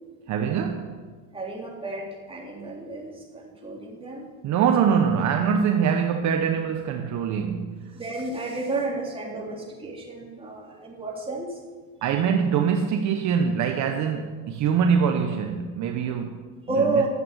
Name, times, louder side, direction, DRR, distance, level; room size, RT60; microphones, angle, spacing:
voice 1, 0.3-1.0 4.4-7.9 12.0-16.5 16.8-17.1, right 7 dB, 55° right, 5 dB, 1.2 m, -24 dB
voice 2, 1.3-4.3 7.9-11.6 16.7-17.1, right 3 dB, 15° right, -2 dB, 3.5 m, -30 dB
11.0 x 7.8 x 9.2 m, 1.4 s
supercardioid pair, 115°, 35 cm